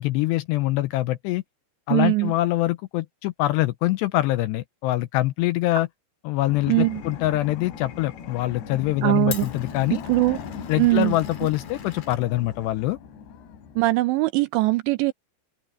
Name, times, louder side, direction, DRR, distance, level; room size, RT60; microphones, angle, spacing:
voice 1, 0.0-1.4 1.9-5.9 6.2-10.0 10.7-13.0, left 16 dB, 85° left, 2.5 m, -24 dB
voice 2, 1.9-2.3 6.7-7.0 9.0-9.5 10.1-10.4 10.8-11.1 13.8-15.1, right 20 dB, 85° right, 2.6 m, -21 dB
sound 1, 6.5-13.9, left 7 dB, 65° left, 4.5 m, -38 dB
Glass, 6.7-13.0, left 8 dB, 45° left, 3.2 m, -44 dB
open air
omnidirectional pair, 5.6 m